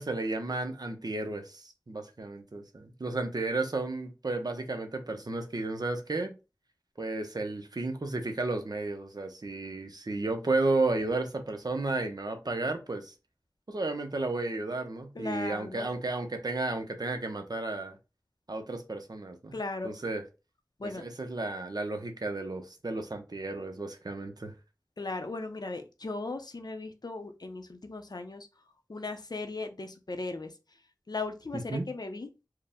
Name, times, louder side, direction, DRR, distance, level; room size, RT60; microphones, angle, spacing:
voice 1, 0.0-6.4 7.0-13.1 13.7-18.0 18.5-19.5 19.8-20.2 20.8-24.5 31.7-31.8, right 2 dB, 70° right, 0.8 m, -33 dB
voice 2, 15.1-15.9 19.5-19.9 20.8-21.0 25.0-28.5 28.9-30.6 31.1-32.3, left 3 dB, 75° left, 0.6 m, -37 dB
4.7 x 2.1 x 3.6 m
wide cardioid pair, 50°, 7 cm